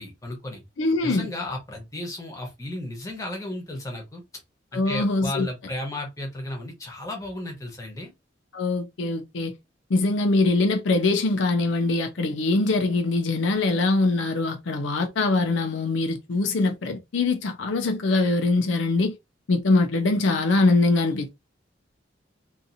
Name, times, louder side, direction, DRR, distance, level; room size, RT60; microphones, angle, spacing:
voice 1, 0.0-0.6 1.0-4.2 4.7-8.1, left 1 dB, 15° left, 0.9 m, -34 dB
voice 2, 0.8-1.3 4.7-5.5 8.5-9.5 9.9-19.1 19.5-21.3, left 3 dB, 75° left, 0.5 m, -23 dB
2.8 x 2.5 x 2.5 m
head